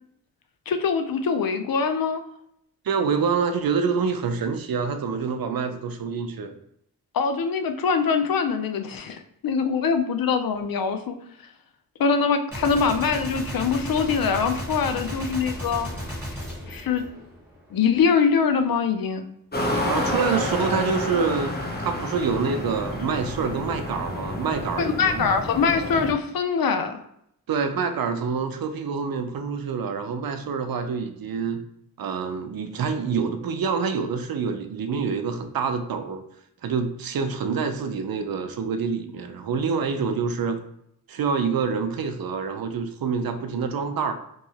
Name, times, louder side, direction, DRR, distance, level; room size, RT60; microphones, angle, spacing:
voice 1, 0.7-2.2 7.1-11.2 12.0-15.9 16.7-17.0 17.7-19.2 20.3-20.4 24.8-27.0, left 5 dB, 70° left, 7 dB, 0.5 m, -23 dB
voice 2, 2.8-6.6 19.8-25.3 27.5-31.6 32.0-36.2 36.6-40.6 41.1-44.1, right 5 dB, 70° right, 8 dB, 0.5 m, -26 dB
Gunshot gunfire, 12.5-17.7, equal, 5° right, 1.5 m, -34 dB
sound 1, 19.5-26.1, left 1 dB, 25° left, 0.7 m, -29 dB
3.0 x 2.7 x 2.8 m, 0.74 s
wide cardioid pair, 65°, 36 cm